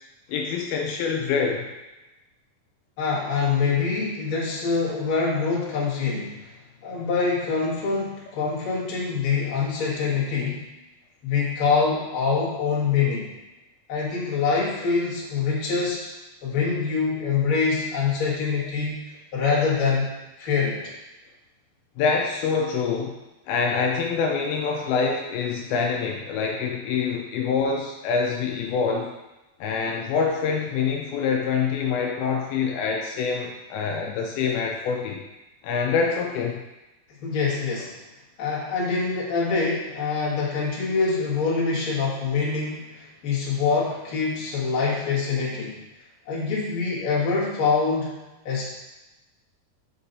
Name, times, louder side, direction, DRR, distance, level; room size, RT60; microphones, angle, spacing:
voice 1, 0.3-1.7 22.0-23.2 23.5-29.1 29.6-35.2 35.6-36.6, left 5 dB, 80° left, 0 dB, 2.4 m, -25 dB
voice 2, 3.0-6.5 6.8-10.6 11.2-13.3 13.9-16.0 16.4-18.9 19.3-20.1 20.4-20.9 37.2-37.9 38.4-45.8 46.3-48.2 48.4-48.7, left 5 dB, 40° left, -8 dB, 2.1 m, -25 dB
5.5 x 5.3 x 4.1 m, 1.0 s
omnidirectional pair, 4.5 m